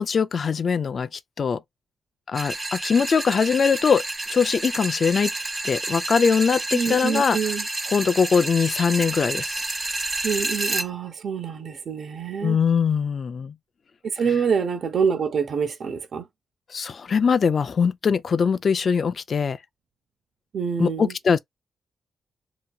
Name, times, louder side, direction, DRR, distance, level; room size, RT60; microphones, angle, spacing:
voice 1, 0.0-1.6 2.3-4.0 4.3-5.3 5.6-7.4 7.9-9.5 12.4-13.6 16.7-19.6 20.8-21.4, left 6 dB, 55° left, 0.3 m, -22 dB
sound 1, 2.3-10.9, right 2 dB, 20° right, 0.6 m, -29 dB
voice 2, 6.7-7.7 10.2-12.6 14.1-16.3 20.5-21.1, right 6 dB, 65° right, 0.7 m, -26 dB
2.8 x 2.7 x 2.3 m
cardioid pair, 75°, 0 cm